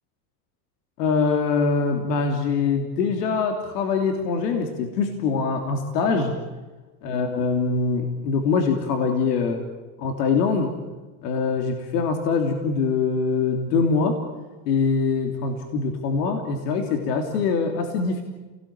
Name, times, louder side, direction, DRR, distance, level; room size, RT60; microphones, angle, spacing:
voice 1, 1.0-6.3 7.0-9.6 10.0-10.8 11.2-14.2 14.6-18.2, left 4 dB, 80° left, 4 dB, 3.3 m, -23 dB
28.5 x 19.0 x 8.8 m, 1.3 s
supercardioid pair, 140°, 48 cm